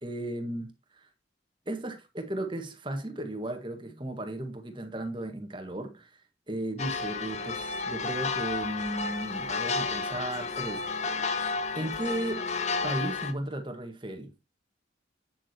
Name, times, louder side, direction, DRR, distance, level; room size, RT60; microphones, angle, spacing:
voice 1, 0.0-1.1 1.7-6.2 6.5-11.3 11.8-12.5 12.8-14.3, right 1 dB, 25° right, 1.8 m, -35 dB
sound 1, 6.8-13.3, left 4 dB, 40° left, 1.0 m, -32 dB
8.8 x 7.6 x 3.0 m
head